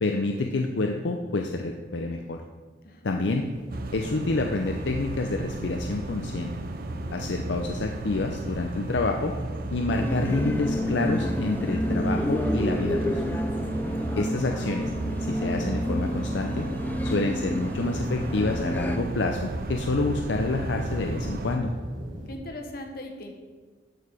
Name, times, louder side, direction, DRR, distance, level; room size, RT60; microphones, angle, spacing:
voice 1, 0.0-2.4 3.0-3.5 3.9-6.5 7.1-9.3 9.7-13.4 14.2-14.9 15.2-16.7 17.0-21.7, left 2 dB, 75° left, 3 dB, 0.6 m, -28 dB
voice 2, 2.8-3.2 13.8-14.2 22.3-23.3, left 1 dB, 55° left, 3 dB, 1.2 m, -40 dB
sound 1, 3.1-22.4, equal, 85° right, 1.6 m, -43 dB
sound 2, 3.7-21.6, right 2 dB, 50° right, 0.6 m, -34 dB
sound 3, 9.9-19.0, equal, 10° left, 0.4 m, -30 dB
13.0 x 4.8 x 4.9 m, 1.4 s
head